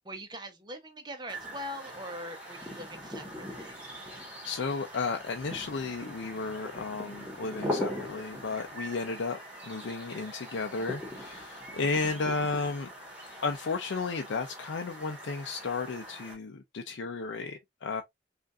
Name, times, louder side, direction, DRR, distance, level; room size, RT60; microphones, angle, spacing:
voice 1, 0.0-3.7, equal, 20° right, 0.7 m, -42 dB
sound 1, 1.3-16.3, equal, 5° right, 1.5 m, -41 dB
voice 2, 4.4-12.9 13.4-18.0, left 4 dB, 75° left, 0.5 m, -33 dB
5.0 x 2.5 x 2.4 m
head